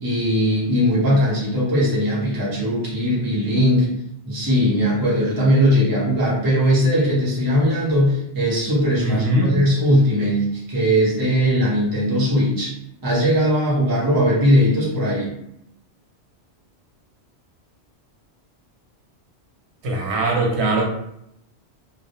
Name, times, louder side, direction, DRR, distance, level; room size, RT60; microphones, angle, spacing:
voice 1, 0.0-3.9 4.3-12.7 13.0-15.3, equal, 25° right, -6 dB, 0.6 m, -19 dB
voice 2, 9.0-9.6 19.8-20.8, right 1 dB, 75° right, 0 dB, 0.9 m, -20 dB
2.2 x 2.0 x 2.8 m, 0.78 s
omnidirectional pair, 1.2 m